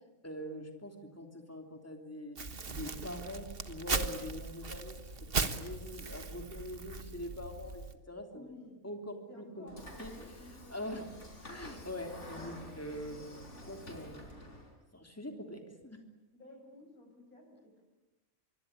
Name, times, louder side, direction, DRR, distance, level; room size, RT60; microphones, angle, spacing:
voice 1, 0.2-2.4 2.6-5.0 5.3-8.5 8.8-9.7 10.0-10.3 10.7-11.1 11.4-13.3 13.6-14.3 14.9-16.0, left 1 dB, 10° left, 4 dB, 3.2 m, -43 dB
Crumpling crinkling, 2.4-8.0, right 4 dB, 40° right, 1.6 m, -38 dB
voice 2, 8.3-8.8 9.3-10.9 16.3-17.8, left 1 dB, 85° left, 2 dB, 8.7 m, -54 dB
Train / Sliding door, 9.7-14.7, left 1 dB, 55° left, 5.0 m, -49 dB
25.0 x 24.0 x 9.8 m, 1.0 s
omnidirectional pair, 1.5 m